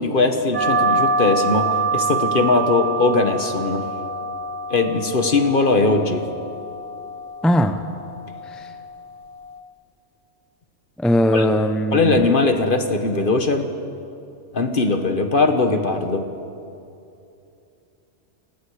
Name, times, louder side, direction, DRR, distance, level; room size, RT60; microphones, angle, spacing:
voice 1, 0.0-3.8 4.7-6.3 11.3-11.4 11.9-13.7 14.5-16.4, left 3 dB, 45° left, 6 dB, 1.6 m, -20 dB
sound 1, 0.5-9.6, right 3 dB, 40° right, 1.7 m, -26 dB
voice 2, 7.4-7.8 8.5-8.6 11.0-12.3, equal, ahead, 7 dB, 0.7 m, -19 dB
29.0 x 20.0 x 5.0 m, 2.7 s
omnidirectional pair, 1.2 m